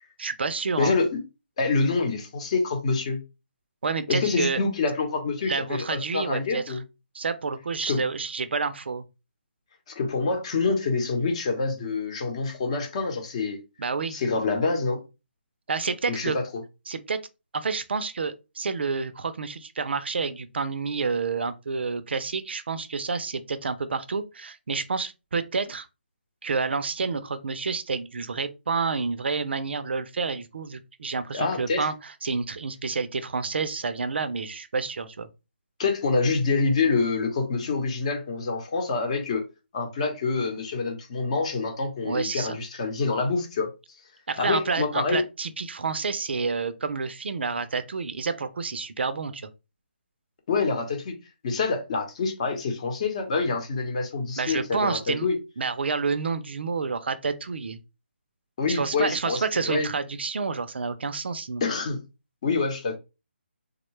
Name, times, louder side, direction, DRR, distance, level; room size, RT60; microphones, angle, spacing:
voice 1, 0.2-1.0 3.8-4.6 5.5-6.8 7.1-9.0 13.8-14.2 15.7-16.4 16.9-17.2 17.5-25.9 26.4-35.3 42.0-42.6 44.3-49.5 54.4-55.3 55.6-57.8 58.7-61.6, right 4 dB, 65° right, 0.5 m, -29 dB
voice 2, 0.8-1.2 1.6-3.2 4.1-6.8 7.9-8.0 9.9-13.6 14.1-15.0 16.1-16.4 31.3-31.9 35.8-39.5 39.7-43.7 44.4-45.2 50.5-51.2 51.4-55.4 58.6-59.9 61.6-62.0 62.4-63.0, left 4 dB, 30° left, 0.8 m, -26 dB
3.5 x 2.2 x 3.1 m
hypercardioid pair, 165°, 6 cm